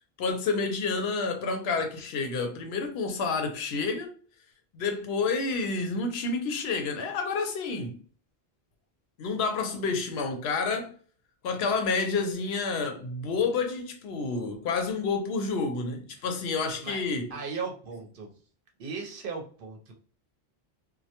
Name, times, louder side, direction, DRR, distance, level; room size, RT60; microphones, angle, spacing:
voice 1, 0.2-4.1 4.7-8.0 9.2-10.9 11.4-17.4, left 4 dB, 85° left, 0.8 m, -29 dB
voice 2, 17.3-18.3 18.8-19.9, right 5 dB, 65° right, 0.8 m, -37 dB
2.2 x 2.1 x 2.8 m
omnidirectional pair, 1.0 m